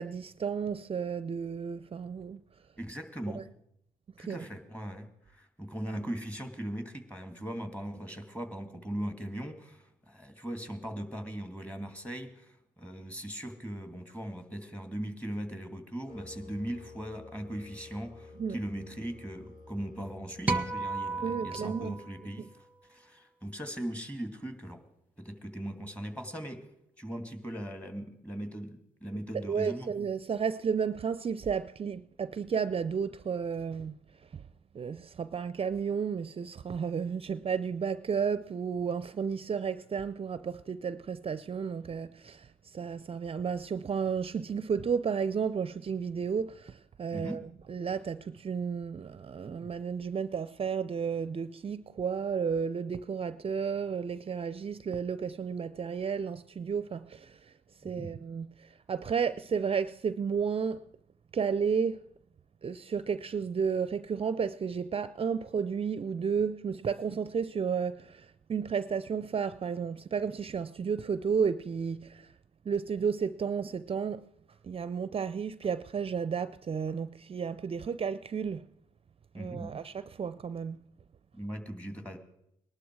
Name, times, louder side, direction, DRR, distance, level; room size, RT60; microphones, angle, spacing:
voice 1, 0.0-2.4 3.3-3.4 4.2-4.5 18.4-18.6 21.2-22.0 22.4-22.5 29.3-34.0 34.3-34.4 34.7-47.4 47.7-57.5 57.8-60.8 61.3-62.1 62.6-72.3 72.7-74.2 74.6-78.7 79.3-80.8, right 6 dB, 40° right, 0.5 m, -32 dB
voice 2, 2.8-3.4 4.2-22.5 22.9-24.8 25.2-26.6 27.0-29.9 47.1-47.4 57.8-58.1 79.3-79.7 81.3-82.2, right 1 dB, 10° left, 2.5 m, -39 dB
sound 1, 16.1-22.2, left 3 dB, 55° left, 7.5 m, -51 dB
sound 2, 20.5-22.9, right 3 dB, 10° right, 1.2 m, -34 dB
19.5 x 11.5 x 4.7 m
cardioid pair, 70°, 15 cm